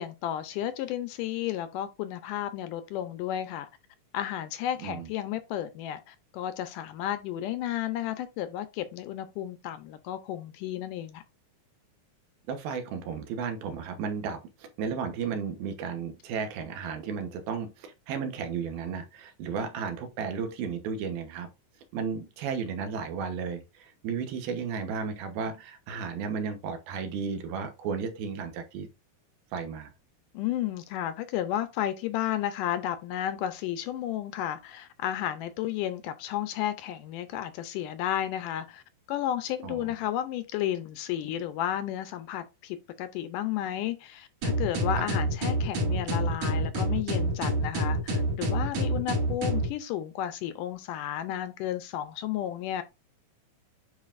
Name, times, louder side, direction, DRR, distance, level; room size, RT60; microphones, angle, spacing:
voice 1, 0.0-3.7 4.1-11.2 30.3-38.8 39.1-52.8, left 11 dB, 80° left, 2.0 m, -32 dB
voice 2, 4.8-5.1 12.5-21.5 21.9-28.9 29.5-29.9 39.6-39.8 44.9-45.1, right 6 dB, 90° right, 3.0 m, -34 dB
sound 1, 44.4-49.7, right 1 dB, 55° right, 3.1 m, -27 dB
9.6 x 4.5 x 2.5 m
omnidirectional pair, 4.1 m